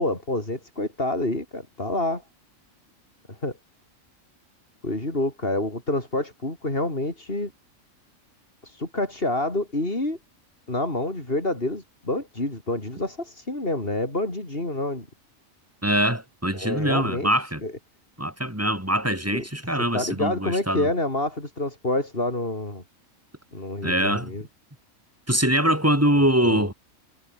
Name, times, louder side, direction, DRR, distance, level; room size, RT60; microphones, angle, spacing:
voice 1, 0.0-2.2 3.3-3.5 4.8-7.5 8.6-10.2 10.7-15.1 16.5-17.3 17.6-17.7 19.3-19.4 19.9-22.8 23.5-24.4 26.4-26.7, left 2 dB, 45° left, 5.4 m, -27 dB
voice 2, 15.8-17.6 18.2-20.9 23.8-24.4 25.3-26.7, right 1 dB, 10° right, 4.9 m, -23 dB
omnidirectional pair, 1.4 m